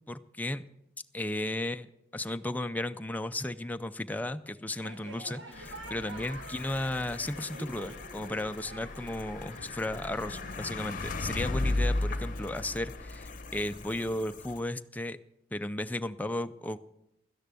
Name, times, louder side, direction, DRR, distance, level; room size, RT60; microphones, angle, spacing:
voice 1, 0.1-0.7 1.1-1.9 2.1-15.2 15.5-16.8, left 1 dB, 10° left, 9 dB, 0.4 m, -34 dB
sound 1, 4.8-11.8, right 2 dB, 75° right, 1.3 m, -48 dB
sound 2, 5.5-14.6, left 2 dB, 45° left, 0.8 m, -36 dB
12.5 x 10.5 x 6.8 m, 0.84 s
head